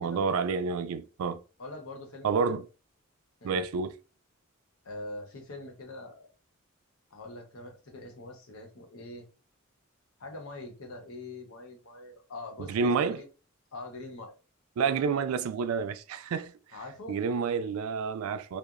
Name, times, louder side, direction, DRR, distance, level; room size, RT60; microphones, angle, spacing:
voice 1, 0.0-1.4 2.2-2.7 3.4-3.9 12.6-13.2 14.8-16.5 17.1-18.6, right 5 dB, 90° right, 0.3 m, -29 dB
voice 2, 1.6-2.6 3.4-3.6 4.8-6.3 7.1-9.3 10.2-13.3 13.7-14.3 16.7-17.2, left 2 dB, 85° left, 0.8 m, -43 dB
2.8 x 2.0 x 2.3 m
head